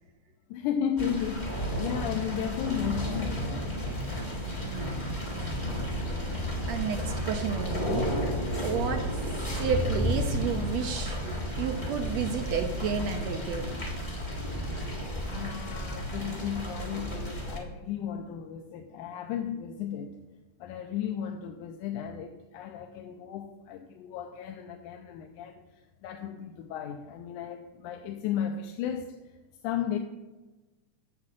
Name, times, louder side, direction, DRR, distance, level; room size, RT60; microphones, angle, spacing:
voice 1, 0.5-3.9 15.3-20.2 20.6-29.4 29.6-30.0, left 9 dB, 80° left, 2.1 m, -34 dB
sound 1, 1.0-17.6, equal, 35° left, 0.7 m, -32 dB
voice 2, 4.6-5.1 6.7-8.2 8.6-9.0 9.6-13.9, right 6 dB, 70° right, 1.7 m, -31 dB
8.4 x 7.5 x 7.5 m
omnidirectional pair, 3.7 m